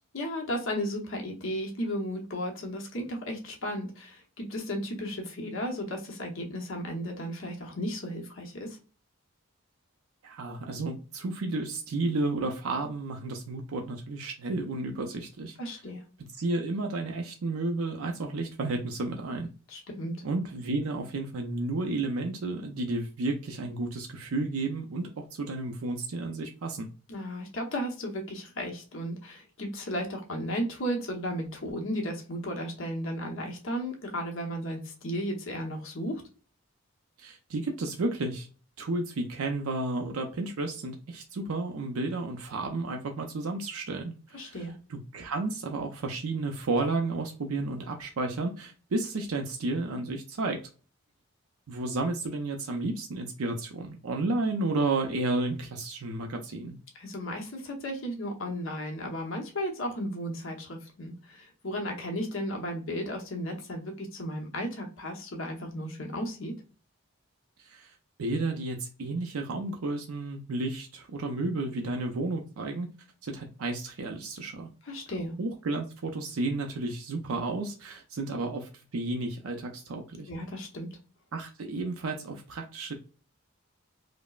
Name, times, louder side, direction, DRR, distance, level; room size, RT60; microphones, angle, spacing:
voice 1, 0.1-8.8 15.6-16.0 19.7-20.1 27.1-36.2 44.3-44.7 56.9-66.6 74.8-75.3 80.3-80.9, equal, 65° left, 1 dB, 0.9 m, -34 dB
voice 2, 10.2-15.8 16.3-19.5 20.2-26.9 37.2-38.5 38.8-50.6 51.7-56.8 67.6-67.9 68.2-72.9 73.2-74.7 75.4-80.3 81.3-82.9, right 2 dB, 85° right, 3 dB, 0.5 m, -32 dB
5.0 x 2.0 x 2.4 m, 0.36 s
head